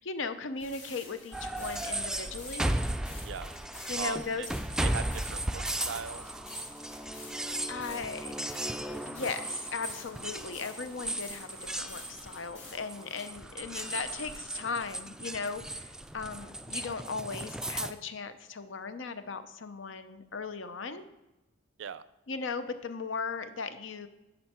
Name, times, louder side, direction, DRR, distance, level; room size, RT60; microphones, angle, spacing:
voice 1, 0.0-2.8 3.9-4.4 7.7-8.4 8.8-21.1 22.3-24.1, left 4 dB, 75° left, 11 dB, 0.7 m, -37 dB
sound 1, 0.6-13.3, left 3 dB, 40° left, 3.2 m, -51 dB
sound 2, 1.3-17.9, right 1 dB, 5° right, 0.3 m, -36 dB
voice 2, 4.0-4.5 4.8-6.3 21.8-22.0, right 7 dB, 70° right, 15 dB, 0.4 m, -39 dB
10.5 x 6.5 x 4.3 m, 0.99 s
head